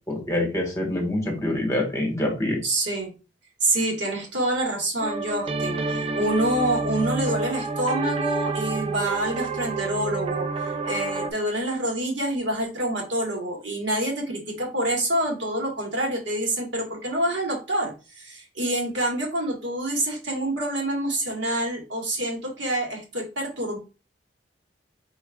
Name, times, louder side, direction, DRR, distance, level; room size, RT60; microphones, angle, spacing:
voice 1, 0.1-2.6, left 1 dB, 15° left, 0 dB, 1.5 m, -25 dB
voice 2, 2.6-3.1 3.6-23.8, right 1 dB, 80° right, -1 dB, 1.7 m, -27 dB
sound 1, 5.0-11.3, right 3 dB, 30° right, 0.4 m, -29 dB
4.6 x 4.4 x 2.3 m, 0.31 s
head